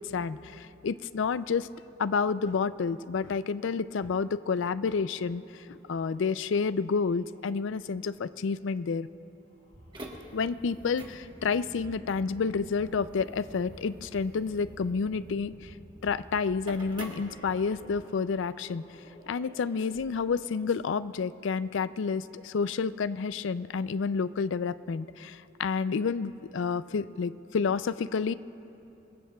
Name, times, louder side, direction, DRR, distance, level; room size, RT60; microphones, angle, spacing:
voice 1, 0.0-1.7 2.0-9.1 10.3-15.7 16.0-18.8 19.3-28.3, left 5 dB, 75° left, 15 dB, 0.4 m, -30 dB
sound 1, 4.8-20.5, equal, 35° left, 4.5 m, -59 dB
sound 2, 9.7-18.0, right 1 dB, 25° right, 1.2 m, -47 dB
25.5 x 21.0 x 2.3 m, 3.0 s
head